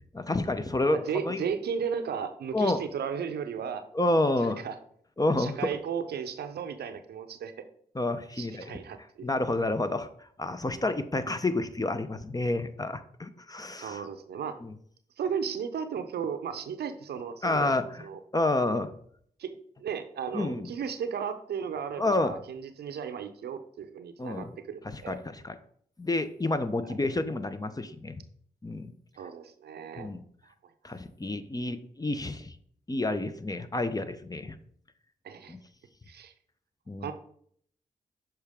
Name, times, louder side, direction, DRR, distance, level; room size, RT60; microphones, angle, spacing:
voice 1, 0.1-1.4 2.5-2.8 3.9-4.6 5.2-5.7 7.9-8.8 9.2-10.1 10.4-14.0 14.6-14.7 17.4-18.1 18.3-18.9 20.3-20.7 22.0-22.3 24.2-24.5 24.8-25.5 26.0-28.2 28.6-28.9 30.0-30.2 30.8-32.5 32.9-34.6 35.5-35.6 36.9-37.1, left 2 dB, 20° left, 10 dB, 0.7 m, -29 dB
voice 2, 0.9-3.8 4.2-4.7 5.4-7.5 8.4-9.3 13.8-14.6 15.2-18.2 19.4-19.5 19.8-25.2 26.9-27.0 29.2-30.1 35.2-35.6 36.1-36.3 37.0-37.1, right 7 dB, 75° right, 9 dB, 0.6 m, -35 dB
6.6 x 4.5 x 3.6 m, 0.63 s
supercardioid pair, 40°, 17 cm